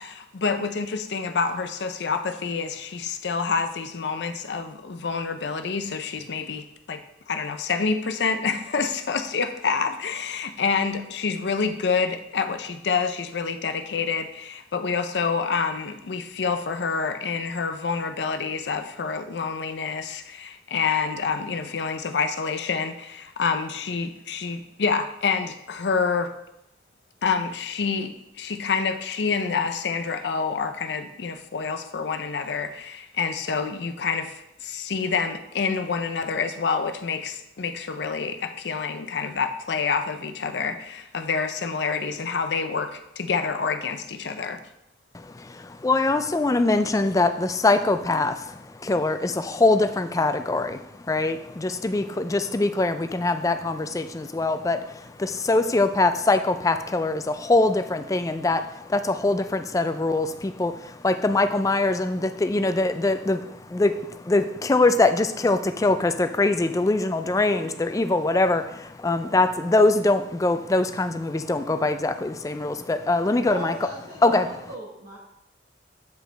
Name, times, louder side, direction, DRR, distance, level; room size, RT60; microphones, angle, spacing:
voice 1, 0.0-7.0 7.3-26.3 27.2-44.6, left 5 dB, 70° left, 8 dB, 0.6 m, -27 dB
voice 2, 45.1-73.7 74.2-74.5, left 2 dB, 20° left, 9 dB, 0.3 m, -23 dB
voice 3, 73.4-75.2, right 2 dB, 65° right, -4 dB, 1.2 m, -37 dB
8.1 x 5.0 x 3.3 m, 0.82 s
head